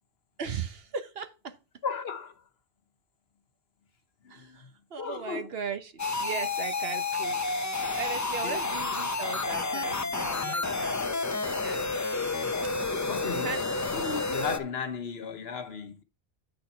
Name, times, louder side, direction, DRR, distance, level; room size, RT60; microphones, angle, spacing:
voice 1, 0.4-1.6 4.3-7.4 7.9-11.1 11.4-11.9 13.4-13.7, right 5 dB, 60° right, 1.1 m, -37 dB
voice 2, 1.8-2.4 4.2-4.7 5.0-5.5 8.4-8.6 13.1-13.6 13.9-16.0, left 6 dB, 65° left, 1.1 m, -35 dB
sound 1, 6.0-14.6, left 3 dB, 25° left, 0.4 m, -30 dB
8.7 x 4.2 x 5.5 m
omnidirectional pair, 1.2 m